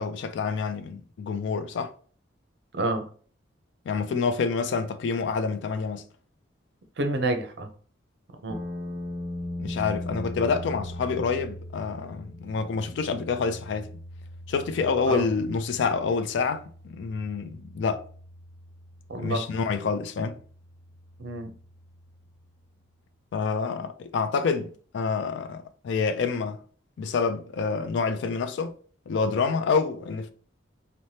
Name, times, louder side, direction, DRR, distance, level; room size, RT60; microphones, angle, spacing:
voice 1, 0.0-1.9 3.9-6.1 9.6-13.9 14.5-18.1 19.2-20.4 23.3-26.6 27.0-28.7 29.1-30.3, left 5 dB, 65° left, 0.3 m, -27 dB
voice 2, 7.0-7.7 8.4-8.6 15.1-15.3 19.1-19.5 21.2-21.5, right 2 dB, 60° right, 0.5 m, -28 dB
sound 1, 8.5-22.5, left 1 dB, 10° right, 0.6 m, -40 dB
3.1 x 2.1 x 2.7 m
head